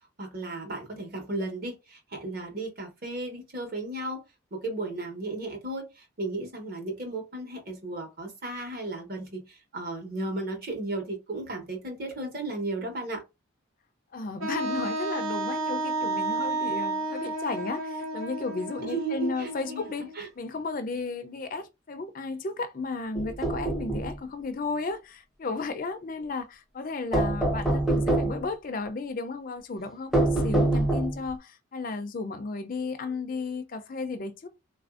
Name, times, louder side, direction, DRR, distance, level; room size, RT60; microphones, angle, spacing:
voice 1, 0.2-4.2 4.5-13.2 18.8-19.9 20.1-20.3, right 2 dB, 45° right, 1.1 m, -34 dB
voice 2, 14.1-34.5, left 3 dB, 40° left, 0.4 m, -34 dB
Wind instrument woodwind instrument, 14.4-20.2, right 2 dB, 85° right, 0.9 m, -32 dB
sound 1, 23.1-24.1 27.1-28.5 30.1-31.3, right 1 dB, ahead, 0.6 m, -25 dB
3.7 x 2.5 x 2.4 m
head